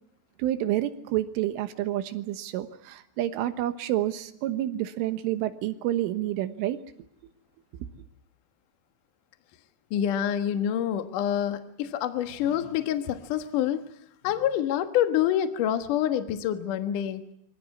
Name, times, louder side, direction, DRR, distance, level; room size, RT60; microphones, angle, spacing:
voice 1, 0.4-6.8, right 13 dB, 85° right, 10 dB, 3.7 m, -29 dB
voice 2, 9.9-13.8 14.2-17.2, left 10 dB, 65° left, 8 dB, 2.1 m, -27 dB
25.0 x 17.0 x 9.7 m, 0.72 s
omnidirectional pair, 5.6 m